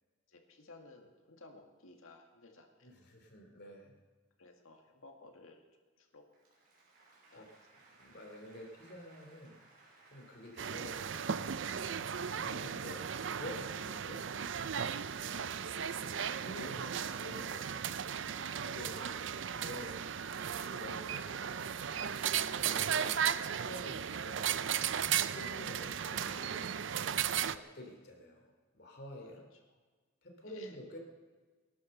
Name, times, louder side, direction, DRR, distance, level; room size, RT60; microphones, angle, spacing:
voice 1, 0.3-2.9 4.4-6.3 6.5-6.6 7.3-7.5 14.1-14.2 15.4-15.5 18.9-19.2 20.6-20.7 29.3-29.8 30.4-31.0, left 3 dB, 90° left, 3 dB, 2.3 m, -57 dB
voice 2, 2.8-3.9 7.0-7.1 7.3-7.4 8.0-9.6 10.1-11.4 12.3-14.2 16.4-17.8 18.5-19.9 20.4-21.7 22.5-23.1 23.5-24.5 25.3-26.8 27.5-29.4 30.2-31.0, equal, 50° left, 2 dB, 3.1 m, -49 dB
Applause, 6.2-13.7, right 2 dB, 45° right, 5.5 m, -63 dB
sound 1, 10.6-27.6, right 8 dB, 60° right, 0.5 m, -36 dB
18.5 x 11.5 x 6.7 m, 1.4 s
head